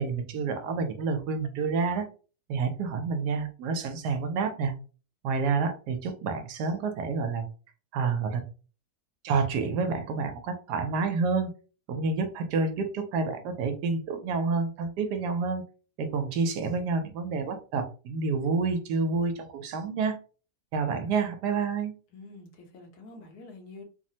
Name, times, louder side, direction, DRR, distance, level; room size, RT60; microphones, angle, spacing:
voice 1, 0.0-2.1 2.5-4.7 5.2-7.5 7.9-8.4 9.2-11.5 11.9-15.6 16.0-20.2 20.7-21.9, right 4 dB, 75° right, 7 dB, 1.1 m, -28 dB
voice 2, 22.1-23.8, left 3 dB, 70° left, 3 dB, 1.2 m, -47 dB
3.1 x 2.0 x 2.7 m, 0.36 s
omnidirectional pair, 1.8 m